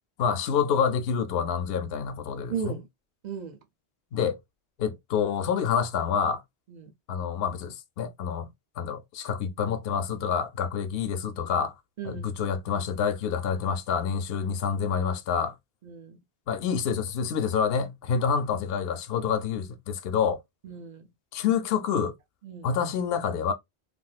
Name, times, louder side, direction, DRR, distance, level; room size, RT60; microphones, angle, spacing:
voice 1, 0.2-2.8 4.1-4.4 4.8-6.4 7.1-8.5 8.8-11.7 12.0-15.5 16.5-20.4 21.3-22.1 22.6-23.5, left 7 dB, 70° left, 0.8 m, -27 dB
voice 2, 2.5-2.9 3.2-3.6 6.7-6.9 12.0-12.3 15.8-16.2 20.6-21.1 22.4-22.7, right 7 dB, 50° right, 0.7 m, -36 dB
3.4 x 2.5 x 2.4 m
omnidirectional pair, 1.1 m